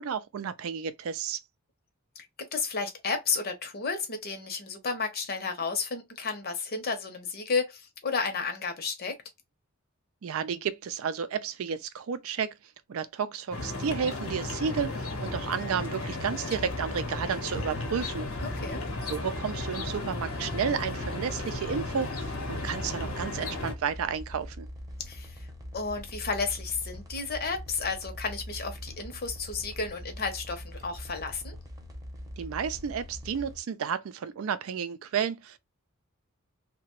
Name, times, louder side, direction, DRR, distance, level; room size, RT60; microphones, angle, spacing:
voice 1, 0.0-1.4 10.2-12.5 12.9-18.3 19.1-24.7 32.4-35.6, right 7 dB, 70° right, 0.4 m, -32 dB
voice 2, 2.2-9.2 18.4-18.8 25.1-25.4 25.7-31.6, left 4 dB, 45° left, 0.8 m, -32 dB
sound 1, 13.5-23.7, left 2 dB, 90° left, 0.9 m, -35 dB
sound 2, 16.5-33.6, equal, 15° right, 0.8 m, -43 dB
2.8 x 2.2 x 3.0 m
head